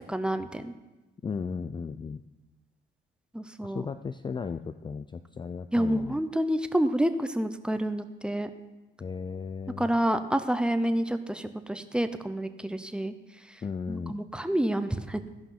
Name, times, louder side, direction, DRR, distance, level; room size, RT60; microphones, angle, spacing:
voice 1, 0.1-0.7 3.3-3.9 5.7-8.5 9.8-13.1 13.5-13.6 13.9-15.2, right 1 dB, 5° right, 9 dB, 0.7 m, -28 dB
voice 2, 1.2-2.2 3.6-6.2 9.0-9.9 13.6-14.2, left 5 dB, 25° left, 10 dB, 0.4 m, -35 dB
15.0 x 5.6 x 5.8 m, 1.1 s
cardioid pair, 90°, 20 cm